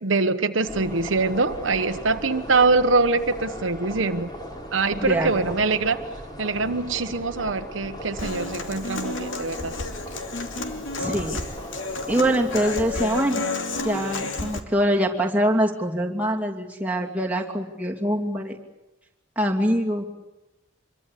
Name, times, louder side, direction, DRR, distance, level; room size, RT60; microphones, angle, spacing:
voice 1, 0.0-4.3 4.7-6.0 6.4-9.7, right 3 dB, 80° right, 8 dB, 1.1 m, -23 dB
sound 1, 0.6-12.9, equal, 20° left, 3.8 m, -38 dB
voice 2, 5.0-5.3 11.0-11.4 12.1-13.5 13.8-18.6 19.4-20.0, equal, 5° right, -2 dB, 2.8 m, -24 dB
Human voice / Acoustic guitar, 8.2-14.6, left 3 dB, 80° left, 2.6 m, -31 dB
26.0 x 23.0 x 8.4 m, 0.98 s
head